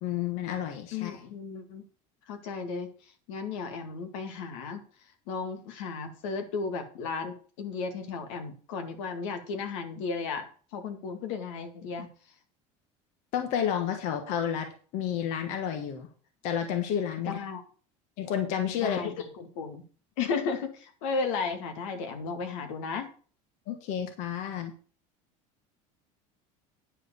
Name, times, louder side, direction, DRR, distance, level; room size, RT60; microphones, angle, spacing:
voice 1, 0.0-1.2 13.3-16.1 16.4-17.4 18.2-19.2 23.7-24.7, left 9 dB, 50° left, 5 dB, 1.4 m, -31 dB
voice 2, 0.9-1.8 2.3-2.9 3.3-4.8 5.3-12.1 17.3-17.6 18.8-19.9 20.2-23.1, left 5 dB, 80° left, 6 dB, 2.1 m, -34 dB
10.0 x 4.9 x 7.0 m, 0.41 s
cardioid pair, 180°, 16 cm